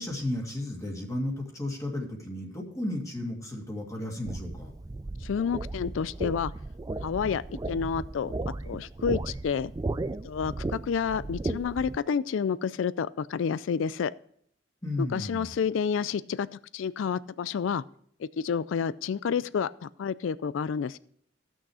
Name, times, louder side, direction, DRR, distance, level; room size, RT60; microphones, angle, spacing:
voice 1, 0.0-4.7 14.8-15.5, left 1 dB, 15° left, 0 dB, 2.3 m, -33 dB
sound 1, 4.3-12.0, right 2 dB, 20° right, 0.3 m, -35 dB
voice 2, 5.2-6.5 7.0-7.4 7.7-8.3 8.6-9.7 10.2-14.1 15.1-16.5 16.7-17.8 18.2-21.0, left 6 dB, 75° left, 18 dB, 0.4 m, -29 dB
15.0 x 6.4 x 4.9 m, 0.67 s
head